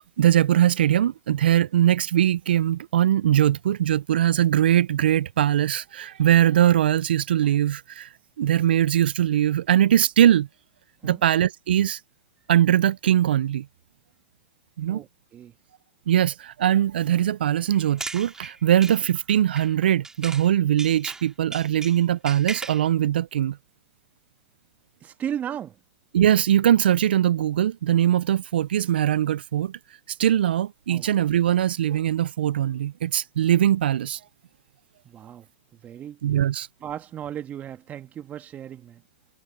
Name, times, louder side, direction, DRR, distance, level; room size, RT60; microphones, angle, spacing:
voice 1, 0.0-8.1 8.4-10.5 11.0-12.0 12.5-13.7 14.8-15.0 16.1-23.6 26.1-29.8 30.2-34.2 36.2-36.7, right 11 dB, 85° right, 0.3 m, -21 dB
voice 2, 14.9-15.5 25.0-25.8 30.9-31.1 35.0-35.5 35.7-36.2 36.8-39.0, right 10 dB, 30° right, 1.6 m, -35 dB
sound 1, 17.7-20.5 20.8-22.9, right 3 dB, 10° right, 4.4 m, -37 dB
hypercardioid pair, 115°, 5 cm